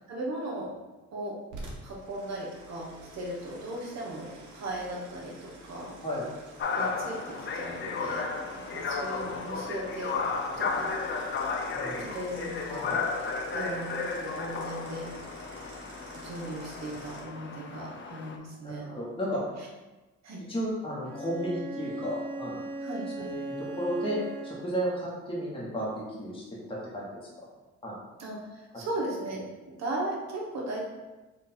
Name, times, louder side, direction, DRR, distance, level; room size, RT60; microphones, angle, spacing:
voice 1, 0.1-0.7 1.1-1.4 1.8-5.9 6.7-8.2 8.7-10.1 10.6-10.9 11.8-13.0 13.5-15.1 16.2-18.9 19.6-19.7 20.2-20.5 22.8-23.3 28.2-30.9, right 1 dB, 60° right, -2 dB, 1.3 m, -37 dB
sound 1, 1.5-17.2, right 1 dB, 75° right, 1.0 m, -48 dB
sound 2, 6.6-18.4, left 4 dB, 40° left, 0.6 m, -34 dB
voice 2, 18.6-19.4 20.5-22.6 23.2-27.2 27.8-28.0, equal, 20° left, -6 dB, 1.3 m, -33 dB
Bowed string instrument, 21.0-24.8, right 2 dB, 15° right, 1.4 m, -38 dB
4.4 x 2.6 x 4.2 m, 1.2 s
cardioid pair, 90°, 30 cm